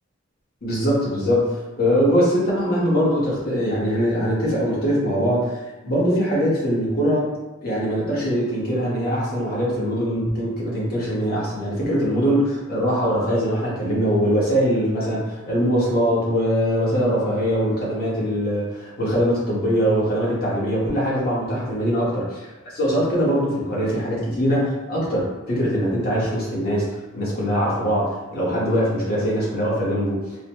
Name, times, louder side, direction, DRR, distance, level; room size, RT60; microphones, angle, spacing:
voice 1, 0.6-7.3 7.6-22.2 22.7-30.2, equal, 50° left, -7 dB, 1.3 m, -22 dB
3.9 x 2.2 x 3.0 m, 1.1 s
head